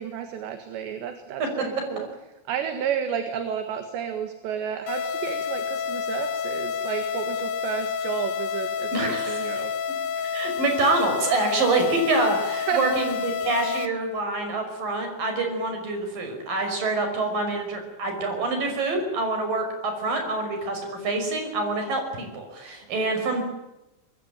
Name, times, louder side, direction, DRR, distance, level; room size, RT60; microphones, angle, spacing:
voice 1, 0.0-2.1 2.5-10.3 12.7-12.8, right 8 dB, 70° right, 7 dB, 3.9 m, -32 dB
sound 1, 4.9-13.9, left 6 dB, 65° left, 2.6 m, -29 dB
voice 2, 8.9-9.6 10.3-23.4, right 2 dB, 50° right, 5 dB, 7.2 m, -26 dB
24.5 x 21.5 x 9.1 m, 0.98 s
omnidirectional pair, 5.3 m